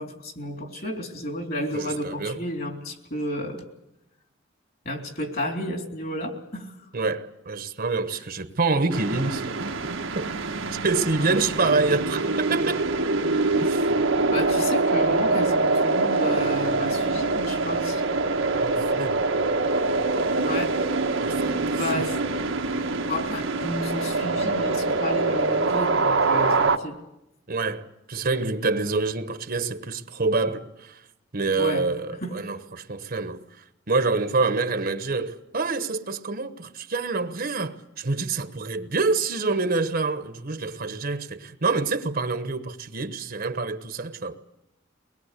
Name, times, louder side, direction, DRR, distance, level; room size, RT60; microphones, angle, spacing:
voice 1, 0.0-3.7 4.8-6.9 8.1-8.2 11.2-11.4 11.7-11.8 14.3-18.0 20.5-20.7 21.7-22.2 23.1-27.0 31.6-31.9 32.2-32.3, equal, 50° left, 3.6 m, -32 dB
voice 2, 1.7-2.4 6.9-9.8 10.1-10.3 10.8-12.9 13.6-13.8 14.5-14.6 18.5-19.3 21.2-22.1 27.5-31.0 31.3-44.3, right 3 dB, 50° right, 1.1 m, -27 dB
sound 1, 8.9-26.8, right 3 dB, 85° right, 1.4 m, -24 dB
23.0 x 20.5 x 8.3 m
head